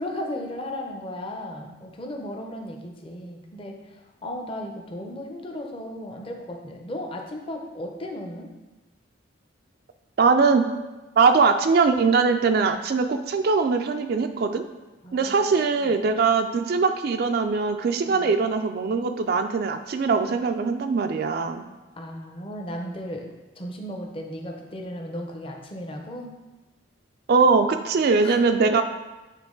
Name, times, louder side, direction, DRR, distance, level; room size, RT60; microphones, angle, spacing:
voice 1, 0.0-8.5 15.0-16.0 18.0-18.4 22.0-23.3 23.6-26.3 28.2-28.4, left 1 dB, 30° left, 2 dB, 0.7 m, -35 dB
voice 2, 10.2-10.6 11.2-14.6 15.1-21.6 27.3-28.8, right 4 dB, 55° right, 7 dB, 0.3 m, -21 dB
8.2 x 3.3 x 3.8 m, 1.1 s
head